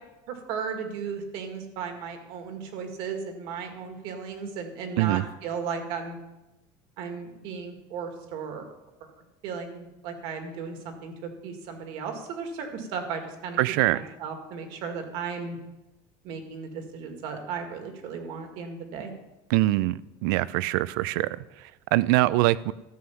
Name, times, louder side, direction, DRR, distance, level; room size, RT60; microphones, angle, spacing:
voice 1, 0.3-6.2 7.0-8.7 9.4-11.1 11.4-13.6 13.9-15.6 16.2-19.1, right 6 dB, 50° right, 5 dB, 1.9 m, -35 dB
voice 2, 13.6-14.0 19.5-22.7, right 18 dB, 65° right, 18 dB, 0.5 m, -24 dB
13.0 x 7.9 x 5.7 m, 1.0 s
cardioid pair, 180°, 12 cm